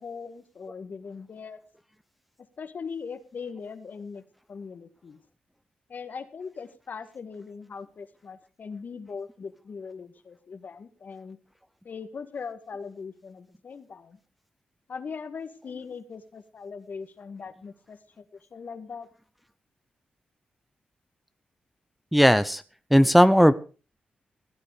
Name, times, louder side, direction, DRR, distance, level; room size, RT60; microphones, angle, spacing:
voice 1, 0.0-1.6 2.6-4.2 4.5-5.2 5.9-11.4 11.8-14.2 14.9-18.2 18.5-19.1, left 5 dB, 60° left, 10 dB, 1.7 m, -40 dB
voice 2, 22.1-22.6 22.9-23.5, equal, ahead, 12 dB, 0.8 m, -17 dB
16.5 x 9.9 x 4.9 m, 0.36 s
cardioid pair, 70°, 3 cm